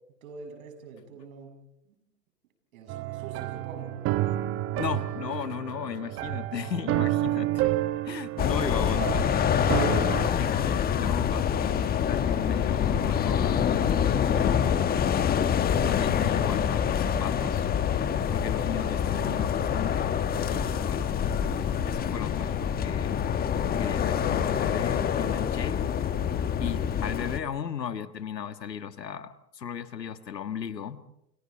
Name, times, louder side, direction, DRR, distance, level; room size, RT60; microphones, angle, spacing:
voice 1, 0.2-1.6 1.9-2.0 2.7-4.1 18.8-19.7, right 4 dB, 55° right, 6 dB, 6.9 m, -45 dB
sound 1, 2.9-10.3, right 15 dB, 25° right, 1.0 m, -30 dB
voice 2, 4.8-7.7 8.0-9.3 9.7-14.9 15.5-17.7 18.3-20.1 20.5-21.1 21.8-23.2 23.8-25.9 26.6-31.0, left 8 dB, 85° left, 11 dB, 1.6 m, -36 dB
sound 2, 8.4-27.4, left 8 dB, 20° left, 1.3 m, -26 dB
30.0 x 28.0 x 4.3 m, 0.81 s
hypercardioid pair, 115°, 48 cm